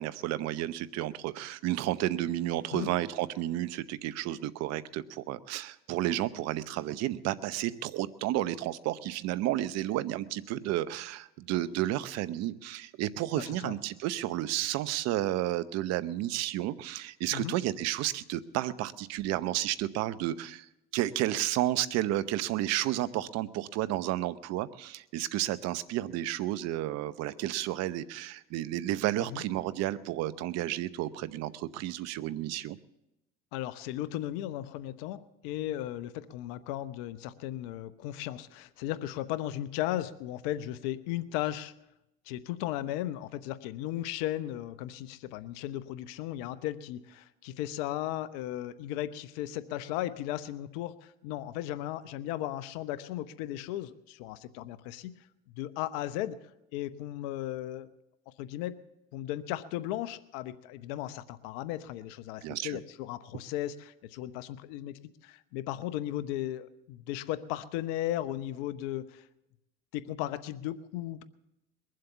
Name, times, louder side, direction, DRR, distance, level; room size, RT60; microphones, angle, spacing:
voice 1, 0.0-20.7 20.9-32.8 62.4-62.8, right 14 dB, 60° right, 16 dB, 0.8 m, -32 dB
voice 2, 13.3-13.8 17.3-17.6 29.3-29.4 33.5-41.7 42.3-55.1 55.5-56.4 56.7-57.9 58.3-58.8 59.1-69.3 69.9-71.2, left 13 dB, 75° left, 14 dB, 0.9 m, -36 dB
21.5 x 7.7 x 6.9 m, 0.88 s
supercardioid pair, 85°, 29 cm